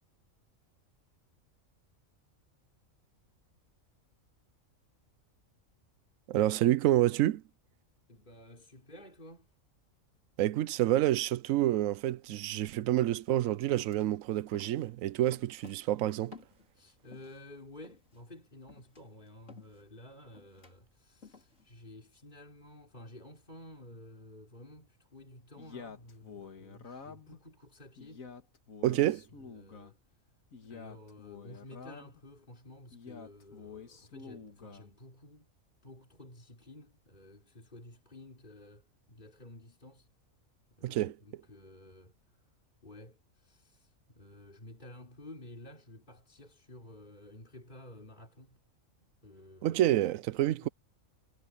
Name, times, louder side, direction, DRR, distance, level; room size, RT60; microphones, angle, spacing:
voice 1, 6.3-7.4 10.4-16.3 28.8-29.2 40.8-41.1 49.6-50.7, right 14 dB, 80° right, 1.0 m, -28 dB
voice 2, 8.1-9.5 16.7-28.3 28.9-30.0 30.6-35.5 35.8-40.1 40.8-42.1 42.8-48.6 49.0-49.8 50.4-50.7, left 1 dB, 35° left, 4.7 m, -52 dB
sound 1, 12.7-12.8 13.2-17.5 17.8-21.8, left 4 dB, 65° left, 3.7 m, -56 dB
Male speech man speaking, 25.6-27.4 28.0-29.9 30.5-32.2 32.9-34.9, left 5 dB, 85° left, 2.2 m, -48 dB
omnidirectional pair, 1.4 m